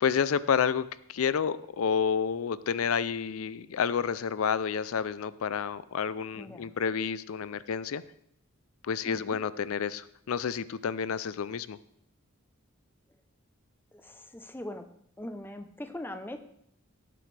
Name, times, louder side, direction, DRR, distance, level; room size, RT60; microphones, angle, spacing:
voice 1, 0.0-8.0 8.8-11.8, left 7 dB, 90° left, 17 dB, 0.4 m, -29 dB
voice 2, 6.4-6.7 9.0-9.4 13.9-14.9 15.2-16.4, left 1 dB, 10° left, 8 dB, 0.7 m, -41 dB
17.5 x 7.7 x 3.3 m, 0.69 s
head